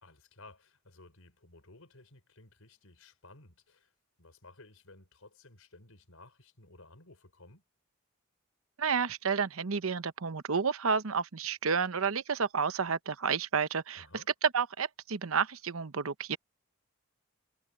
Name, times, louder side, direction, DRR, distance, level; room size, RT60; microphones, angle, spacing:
voice 1, 0.0-3.9 4.2-7.6 13.9-14.3, left 2 dB, 90° left, 5.1 m, -56 dB
voice 2, 8.8-14.0 14.4-16.4, right 6 dB, 85° right, 0.9 m, -30 dB
head